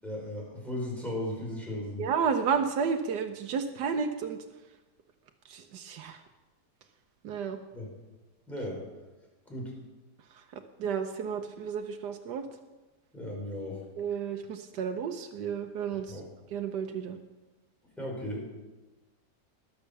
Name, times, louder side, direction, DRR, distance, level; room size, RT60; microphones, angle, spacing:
voice 1, 0.0-2.1 7.7-7.9 8.5-8.8 9.4-9.7 13.1-13.8 16.1-16.3 18.0-18.5, left 1 dB, ahead, -3 dB, 4.9 m, -36 dB
voice 2, 2.0-4.4 5.5-6.2 7.2-7.6 10.3-12.4 14.0-16.2 16.5-17.2, right 6 dB, 90° right, 5 dB, 1.5 m, -32 dB
20.0 x 6.8 x 6.9 m, 1.1 s
omnidirectional pair, 1.8 m